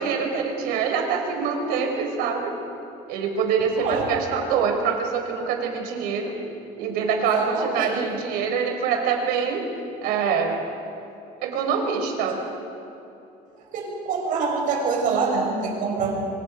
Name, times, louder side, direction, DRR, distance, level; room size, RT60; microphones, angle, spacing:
voice 1, 0.0-2.5 3.1-6.3 6.8-9.6 10.0-10.6 11.4-12.4, right 6 dB, 85° right, 3 dB, 4.5 m, -25 dB
voice 2, 3.8-4.1 7.2-8.2 12.3-12.4 13.7-16.3, right 4 dB, 60° right, 0 dB, 6.6 m, -26 dB
26.5 x 25.0 x 5.2 m, 2.8 s
cardioid pair, 160°, 15 cm